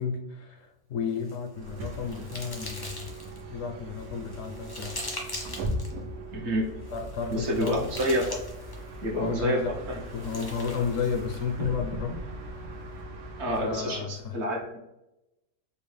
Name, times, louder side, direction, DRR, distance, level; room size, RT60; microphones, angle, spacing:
voice 1, 0.0-3.1 3.5-5.0 6.9-7.9 9.2-9.7 10.1-12.2 13.6-14.4, left 6 dB, 70° left, 4 dB, 0.9 m, -32 dB
sound 1, 1.1-3.4 4.0-5.9 6.8-8.9 9.9-11.5, left 1 dB, 40° left, 0.3 m, -42 dB
Bus, 1.5-14.0, right 1 dB, 80° right, 1.2 m, -39 dB
voice 2, 6.3-6.7 7.3-8.2 9.0-9.6 9.9-10.0 10.4-10.6 13.4-14.8, equal, 55° right, -1 dB, 1.0 m, -28 dB
4.5 x 2.1 x 3.2 m, 0.92 s
omnidirectional pair, 1.5 m